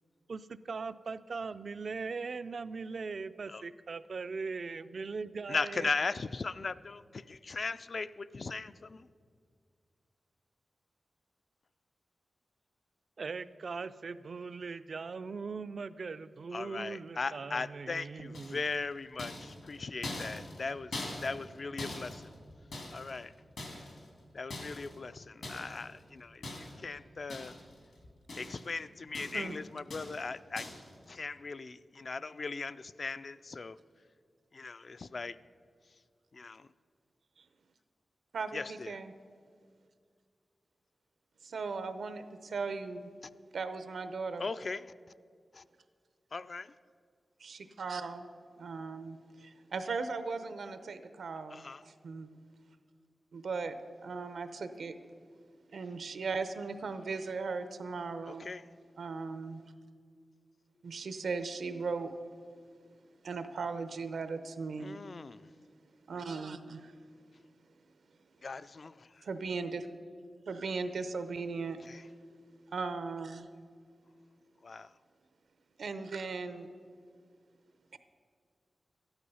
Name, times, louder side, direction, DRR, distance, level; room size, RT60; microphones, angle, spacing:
voice 1, 0.3-5.9 13.2-18.6, right 4 dB, 55° right, 14 dB, 0.4 m, -40 dB
voice 2, 5.5-9.1 16.5-22.4 22.9-23.3 24.3-27.6 28.4-30.7 31.1-33.8 34.5-35.4 36.3-36.7 38.5-39.0 44.4-44.9 45.5-45.6 46.3-46.7 51.5-51.8 58.3-58.7 64.8-65.5 68.4-69.3 71.8-72.1 74.6-74.9, left 4 dB, 45° left, 14 dB, 0.3 m, -38 dB
sound 1, 18.3-18.8 19.2-21.5 21.8-23.2 23.6-24.1 24.5-25.0 25.4-25.9 26.4-26.9 27.3-27.8 28.0-28.7 29.1-29.6 29.9-30.3 30.6-30.9, left 2 dB, 75° left, 2.3 m, -43 dB
voice 3, 38.3-39.1 41.4-43.1 43.5-44.4 47.4-48.3 48.6-51.6 52.0-52.3 53.3-53.7 54.0-55.0 55.7-58.5 59.0-59.6 60.8-62.1 63.2-65.0 66.1-66.9 69.2-69.9 70.5-71.8 72.7-73.5 75.8-76.7 77.9-78.0, right 4 dB, 80° right, 10 dB, 0.7 m, -37 dB
13.0 x 11.0 x 5.5 m, 2.1 s
wide cardioid pair, 135°, 0 cm